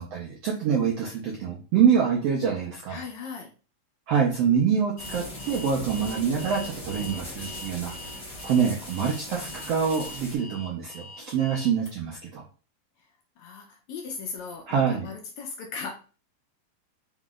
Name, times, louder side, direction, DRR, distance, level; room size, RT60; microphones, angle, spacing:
voice 1, 0.0-3.0 4.1-7.9 8.4-12.4 14.7-15.1, right 7 dB, 80° right, -2 dB, 1.4 m, -25 dB
voice 2, 2.9-3.5 13.4-16.0, left 5 dB, 75° left, 1 dB, 1.7 m, -38 dB
sound 1, 5.0-10.3, left 1 dB, 40° left, 1.6 m, -40 dB
Alarm, 5.0-11.9, left 2 dB, 25° left, 1.6 m, -44 dB
Bass guitar, 6.0-10.1, right 3 dB, 40° right, 0.5 m, -49 dB
5.3 x 3.8 x 2.5 m, 0.36 s
omnidirectional pair, 4.0 m